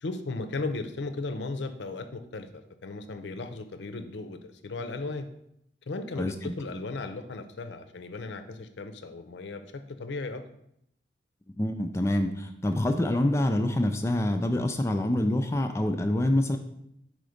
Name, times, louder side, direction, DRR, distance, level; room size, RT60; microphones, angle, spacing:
voice 1, 0.0-5.3 5.9-9.6 9.9-10.4, left 3 dB, 80° left, 9 dB, 0.5 m, -36 dB
voice 2, 6.2-6.5 11.6-16.6, left 1 dB, 15° left, 6 dB, 0.3 m, -26 dB
5.0 x 3.9 x 4.9 m, 0.76 s
head